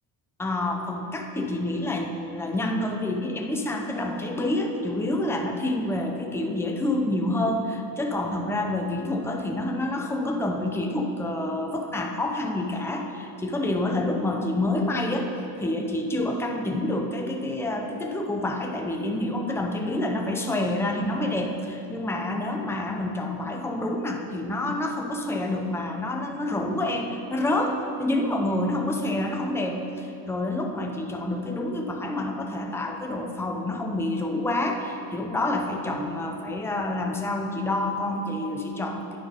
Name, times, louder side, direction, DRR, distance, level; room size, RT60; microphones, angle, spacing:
voice 1, 0.4-15.3 15.6-39.2, left 1 dB, 5° left, 2 dB, 0.8 m, -28 dB
10.0 x 9.1 x 5.2 m, 2.6 s
cardioid pair, 125°, 41 cm